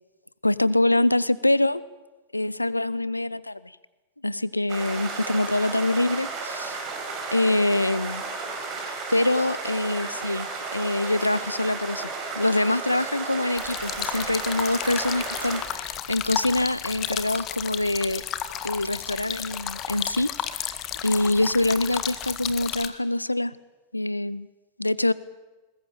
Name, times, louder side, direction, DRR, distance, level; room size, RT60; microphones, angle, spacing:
voice 1, 0.4-1.8 2.3-3.6 4.2-6.8 7.3-8.2 9.1-10.5 10.7-18.2 18.6-20.3 21.0-23.6 23.9-24.5 24.8-25.1, left 1 dB, 85° left, 19 dB, 0.7 m, -24 dB
sound 1, 4.7-15.6, right 4 dB, 40° right, 6.1 m, -33 dB
sound 2, 13.6-22.9, left 10 dB, 35° left, 1.7 m, -33 dB
21.0 x 20.5 x 9.1 m, 1.2 s
figure-of-eight pair, 90°, 0 cm